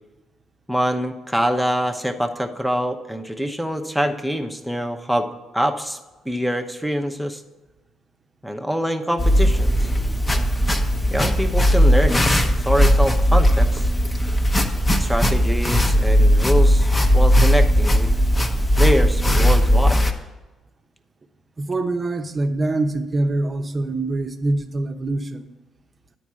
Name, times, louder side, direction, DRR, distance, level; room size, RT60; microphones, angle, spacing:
voice 1, 0.7-5.3 5.5-6.0 6.3-7.4 8.4-9.8 11.1-13.9 15.0-18.1 18.8-20.0, equal, ahead, 5 dB, 0.8 m, -24 dB
sound 1, 9.2-20.1, equal, 25° left, 1.0 m, -17 dB
voice 2, 21.6-25.4, right 2 dB, 30° right, 7 dB, 0.8 m, -24 dB
9.6 x 4.6 x 7.4 m, 1.2 s
cardioid pair, 90°, 0 cm